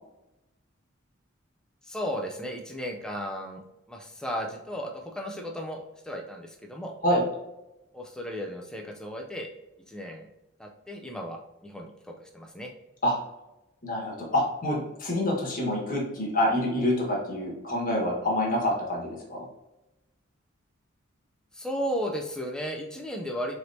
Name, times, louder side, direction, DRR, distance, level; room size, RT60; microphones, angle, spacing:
voice 1, 1.8-6.9 7.9-9.5 9.9-10.2 10.6-12.7 21.5-23.6, equal, 5° left, 1 dB, 0.4 m, -35 dB
voice 2, 13.8-19.4, left 1 dB, 45° left, -2 dB, 1.3 m, -27 dB
4.4 x 3.3 x 2.7 m, 0.95 s
head